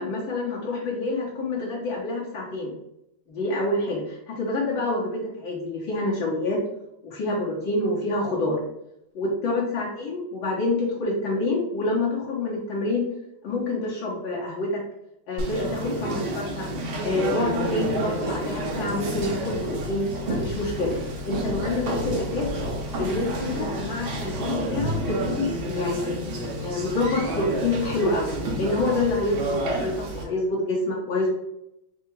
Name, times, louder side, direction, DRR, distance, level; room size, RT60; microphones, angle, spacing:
voice 1, 0.0-2.7 3.3-6.6 7.1-8.6 9.2-13.0 13.4-14.8 15.3-16.7 17.0-20.9 21.3-22.5 23.0-28.3 28.6-31.3, left 2 dB, 65° left, -5 dB, 1.8 m, -27 dB
Conversation, 15.4-30.2, right 1 dB, 65° right, 1.7 m, -30 dB
4.6 x 2.4 x 4.5 m, 0.83 s
omnidirectional pair, 2.4 m